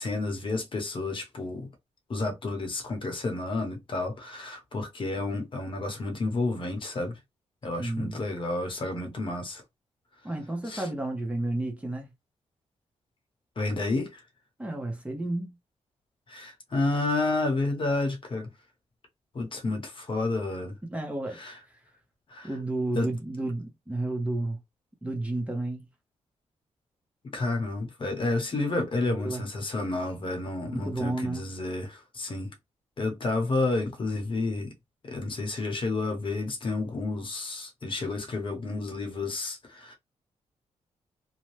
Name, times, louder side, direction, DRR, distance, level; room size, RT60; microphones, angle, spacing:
voice 1, 0.0-1.7 2.1-7.2 7.6-9.6 10.6-10.9 13.6-14.2 16.3-18.5 19.3-20.7 21.3-21.6 22.3-22.5 23.0-23.1 27.3-32.5 33.0-34.7 35.1-39.9, left 2 dB, 45° left, 1.0 m, -30 dB
voice 2, 7.8-8.2 10.2-12.1 14.6-15.6 20.8-21.4 22.4-24.6 25.0-25.8 29.0-29.4 30.7-31.5, right 2 dB, 10° right, 0.8 m, -31 dB
2.7 x 2.2 x 3.2 m
cardioid pair, 85°, 12 cm